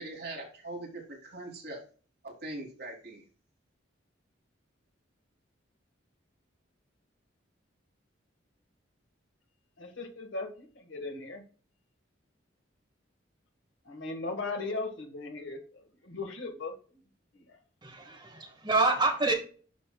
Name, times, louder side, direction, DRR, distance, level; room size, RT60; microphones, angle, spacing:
voice 1, 0.0-1.8 2.2-3.2, right 2 dB, 55° right, -2 dB, 3.0 m, -41 dB
voice 2, 9.8-11.4 13.8-17.0 17.3-17.6, left 3 dB, 75° left, 4 dB, 1.7 m, -38 dB
voice 3, 17.8-19.3, right 3 dB, 25° right, 2 dB, 1.7 m, -27 dB
11.0 x 5.5 x 2.3 m, 0.40 s
head